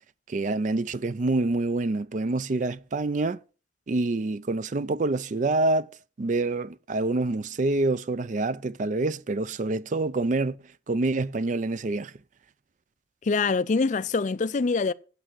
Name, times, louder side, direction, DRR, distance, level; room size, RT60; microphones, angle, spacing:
voice 1, 0.3-3.4 3.9-5.9 6.2-10.6 10.9-12.1, right 2 dB, 40° right, 0.4 m, -26 dB
voice 2, 13.2-14.9, left 4 dB, 40° left, 0.4 m, -24 dB
8.9 x 8.1 x 6.1 m
head